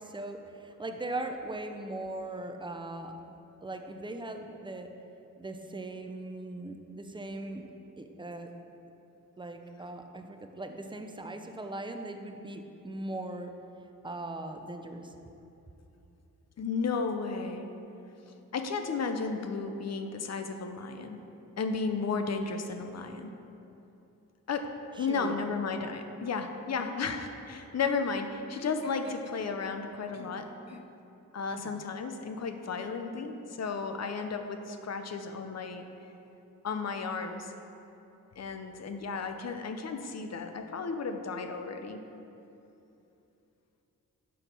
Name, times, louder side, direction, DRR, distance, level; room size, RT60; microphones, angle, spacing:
voice 1, 0.0-3.2 3.6-4.9 5.4-7.7 8.0-8.5 9.4-13.5 14.0-15.2 25.0-25.4, right 2 dB, 15° right, 5 dB, 0.5 m, -39 dB
voice 2, 16.6-17.7 18.3-21.3 21.6-23.4 24.5-30.8 31.3-35.9 36.6-37.5 38.4-42.0, left 4 dB, 50° left, 7 dB, 0.6 m, -34 dB
6.2 x 4.4 x 5.3 m, 2.9 s
cardioid pair, 80°, 34 cm